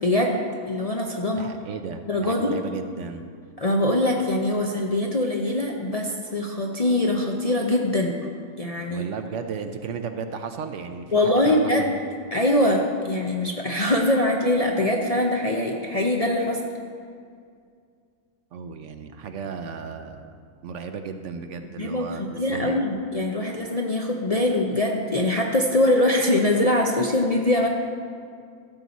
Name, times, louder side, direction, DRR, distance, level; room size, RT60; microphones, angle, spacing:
voice 1, 0.0-1.5 2.1-2.6 3.6-8.2 8.6-9.0 11.1-11.9 12.3-16.6 21.8-27.7, left 1 dB, 40° left, 0 dB, 0.6 m, -23 dB
voice 2, 1.4-3.3 8.9-11.6 18.5-20.4 20.6-22.8, right 5 dB, 65° right, 7 dB, 0.9 m, -34 dB
13.5 x 7.7 x 4.1 m, 2.2 s
omnidirectional pair, 1.4 m